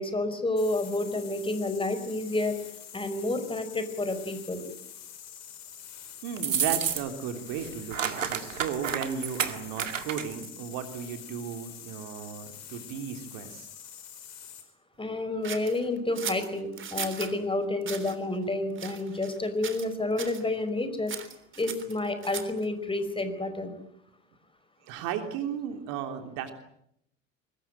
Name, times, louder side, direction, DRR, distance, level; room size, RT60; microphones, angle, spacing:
voice 1, 0.0-2.6 2.9-4.6 15.0-21.1 21.6-23.7, left 2 dB, 15° left, 10 dB, 5.0 m, -30 dB
sound 1, 0.6-14.7, left 9 dB, 45° left, 5.4 m, -46 dB
voice 2, 6.2-13.7 24.8-26.5, right 8 dB, 55° right, 6 dB, 3.3 m, -35 dB
sound 2, 6.4-7.3 7.6-10.5, right 8 dB, 80° right, 1.9 m, -30 dB
sound 3, 15.4-17.3 17.8-18.2 18.8-19.4 19.6-19.9 20.2-20.4 21.1-22.6, right 7 dB, 30° right, 3.5 m, -38 dB
24.0 x 21.0 x 9.0 m, 0.73 s
figure-of-eight pair, 65°, 38 cm